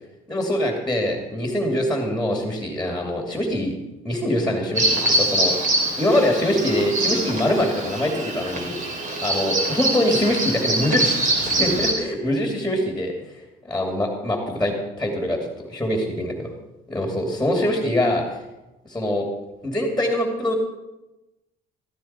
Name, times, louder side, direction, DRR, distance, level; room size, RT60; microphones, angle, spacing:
voice 1, 0.3-3.7 4.0-8.7 9.2-11.2 11.5-13.1 13.7-16.5 16.9-18.4 18.9-19.3 19.6-20.5, left 1 dB, 5° left, 1 dB, 2.6 m, -23 dB
Bird vocalization bird call bird song, 4.8-11.9, right 1 dB, 50° right, 3.3 m, -24 dB
15.0 x 14.0 x 4.4 m, 0.99 s
cardioid pair, 110°, 17 cm